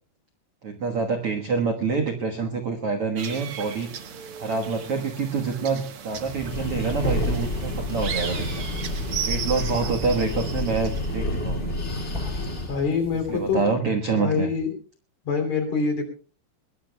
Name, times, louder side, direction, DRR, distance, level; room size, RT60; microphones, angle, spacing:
voice 1, 0.6-4.1 4.4-8.7 9.2-11.8 13.3-14.5, right 4 dB, 60° right, 4 dB, 1.5 m, -26 dB
sound 1, 3.2-11.2, right 8 dB, 80° right, 1.2 m, -36 dB
sound 2, 6.1-13.8, left 1 dB, ahead, 7.5 m, -42 dB
Breathing, 6.3-12.9, left 1 dB, 25° left, 1.8 m, -29 dB
voice 2, 12.7-13.6 14.2-14.8 15.3-16.1, left 5 dB, 45° left, 4 dB, 3.9 m, -25 dB
22.0 x 21.5 x 2.3 m, 0.37 s
omnidirectional pair, 4.6 m